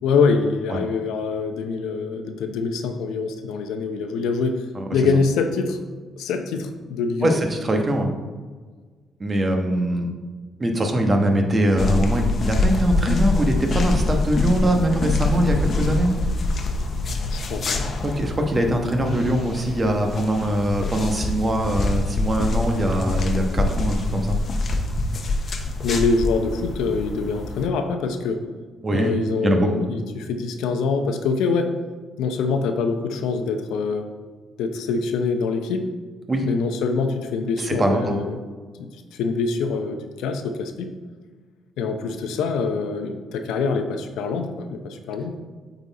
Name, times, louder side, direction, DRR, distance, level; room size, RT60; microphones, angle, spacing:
voice 1, 0.0-4.6 4.9-5.8 6.2-7.4 17.3-17.8 25.8-28.4 28.9-31.7 32.2-34.1 34.6-35.9 36.4-38.3 38.8-38.9 39.2-40.9 41.8-45.4, left 4 dB, 90° left, 6 dB, 0.6 m, -24 dB
voice 2, 7.2-8.1 9.2-10.1 10.6-16.1 18.0-24.4 28.8-29.2 29.4-29.8 36.3-36.5 37.6-38.2, right 1 dB, 30° right, 3 dB, 1.1 m, -22 dB
sound 1, 11.8-27.7, left 2 dB, 50° left, 0.8 m, -25 dB
8.4 x 4.2 x 4.1 m, 1.4 s
cardioid pair, 90°, 0 cm